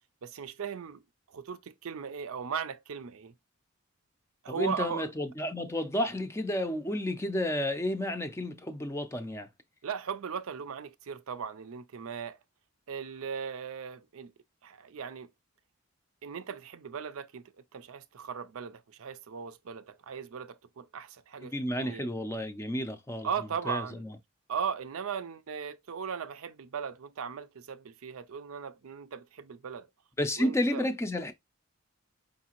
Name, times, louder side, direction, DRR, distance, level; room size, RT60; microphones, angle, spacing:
voice 1, 0.2-1.0 1.3-3.3 4.4-5.1 9.8-12.4 12.9-14.3 14.6-15.3 16.2-17.4 17.7-22.1 23.2-24.0 24.5-29.9 30.4-30.8, right 7 dB, 75° right, 0.5 m, -38 dB
voice 2, 4.6-9.5 21.5-23.3 23.7-24.1 30.2-31.3, left 1 dB, 10° left, 0.4 m, -31 dB
4.8 x 2.6 x 2.9 m
head